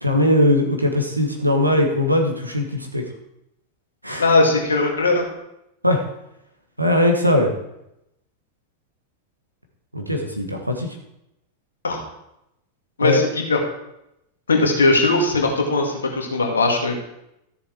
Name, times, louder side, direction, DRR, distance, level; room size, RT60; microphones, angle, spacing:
voice 1, 0.0-3.0 4.0-4.2 5.8-6.0 6.8-7.5 9.9-10.9 13.0-13.2, left 1 dB, 85° right, 2 dB, 1.7 m, -20 dB
voice 2, 4.2-5.2 11.8-12.0 13.0-13.6 14.5-17.0, left 2 dB, 70° left, 1 dB, 2.1 m, -19 dB
13.5 x 7.0 x 4.7 m, 0.83 s
figure-of-eight pair, 90°, 0 cm